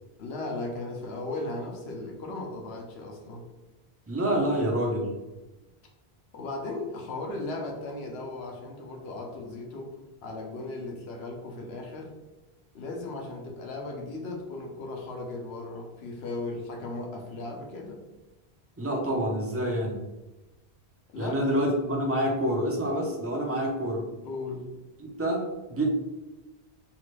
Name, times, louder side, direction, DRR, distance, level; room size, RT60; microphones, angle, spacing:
voice 1, 0.2-3.4 6.3-10.0 10.2-12.1 12.7-18.0 21.1-21.6 24.2-24.7, left 2 dB, 75° left, 1 dB, 1.0 m, -36 dB
voice 2, 4.1-5.1 18.8-20.0 21.2-24.1 25.0-25.9, right 1 dB, 20° right, -1 dB, 0.5 m, -27 dB
3.1 x 2.5 x 3.1 m, 1.1 s
omnidirectional pair, 1.1 m